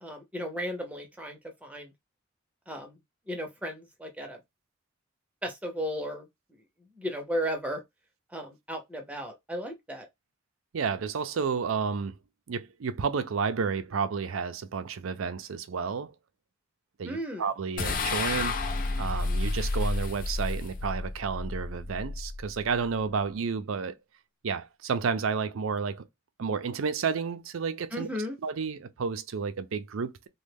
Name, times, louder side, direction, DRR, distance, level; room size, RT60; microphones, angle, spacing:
voice 1, 0.0-1.9 2.7-3.0 3.3-4.4 5.4-6.3 7.0-7.8 8.3-10.1 17.0-17.5 27.9-28.4, equal, 5° right, 0.7 m, -35 dB
voice 2, 10.7-12.1 12.5-16.1 17.0-18.6 19.0-24.0 24.4-26.0 26.4-28.1 28.4-30.3, right 5 dB, 80° right, 0.5 m, -31 dB
sound 1, 17.8-23.1, left 3 dB, 40° left, 0.5 m, -31 dB
3.1 x 2.2 x 3.3 m
head